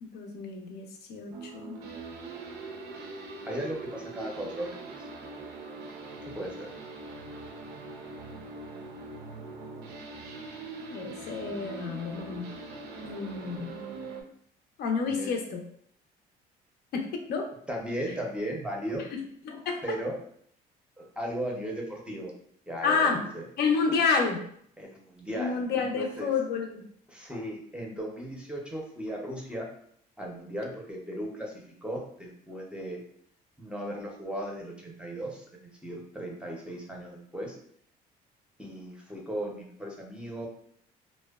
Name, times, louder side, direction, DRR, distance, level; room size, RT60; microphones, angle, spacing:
voice 1, 0.0-1.8 10.9-12.5 13.0-13.7 14.8-15.6 16.9-17.5 19.1-19.8 22.8-23.2 23.6-24.4 25.3-26.8, left 5 dB, 75° left, 3 dB, 0.5 m, -29 dB
sound 1, 1.3-14.2, right 3 dB, 80° right, 0.5 m, -42 dB
voice 2, 3.5-5.1 6.3-6.7 15.1-15.3 17.7-19.1 19.8-20.2 21.0-22.3 22.7-23.4 24.8-25.6 26.0-26.3 27.1-29.7 30.2-33.0 33.6-35.5 35.8-37.6 38.6-40.5, equal, 5° right, -1 dB, 0.5 m, -36 dB
2.6 x 2.1 x 2.2 m, 0.65 s
cardioid pair, 110°, 17 cm